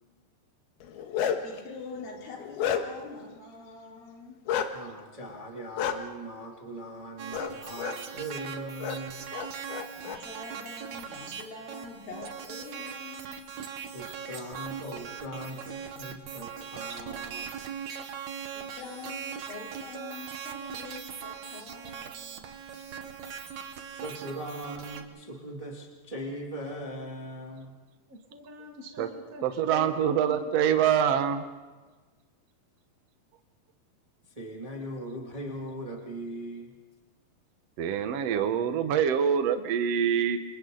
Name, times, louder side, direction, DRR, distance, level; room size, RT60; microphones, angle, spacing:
Bark, 0.8-1.6 2.1-3.1 4.5-4.7 5.8-5.9 7.3-7.5 7.8-8.0 8.8-9.0 9.3-10.2, left 8 dB, 80° left, 3.1 m, -30 dB
voice 1, 1.4-4.4 9.9-13.5 18.5-22.4 22.7-22.8 23.2-23.5, left 3 dB, 65° left, -2 dB, 5.3 m, -45 dB
voice 2, 4.7-9.2 13.9-17.5 23.9-27.7 34.3-36.7, right 1 dB, 10° right, -1 dB, 1.8 m, -40 dB
sound 1, 7.2-25.0, right 7 dB, 60° right, 2.2 m, -40 dB
voice 3, 28.1-30.5, left 1 dB, 35° right, 0 dB, 1.3 m, -43 dB
voice 4, 29.4-31.4 37.8-40.4, right 8 dB, 80° right, 7 dB, 1.4 m, -25 dB
29.0 x 27.5 x 3.9 m, 1.3 s
omnidirectional pair, 4.5 m